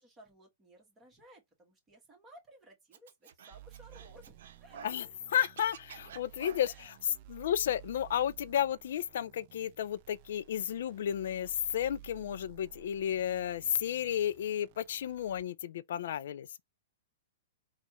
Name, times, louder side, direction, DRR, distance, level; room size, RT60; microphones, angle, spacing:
voice 1, 0.0-5.1 6.6-6.9, right 1 dB, 15° right, 1.7 m, -58 dB
Scratching (performance technique), 2.9-5.0 5.3-6.9, right 7 dB, 70° right, 0.7 m, -50 dB
sound 1, 3.5-15.4, right 15 dB, 45° right, 0.3 m, -55 dB
voice 2, 5.3-6.7 7.3-16.6, left 10 dB, 70° left, 0.4 m, -32 dB
4.1 x 2.4 x 3.0 m
hypercardioid pair, 135°, 0 cm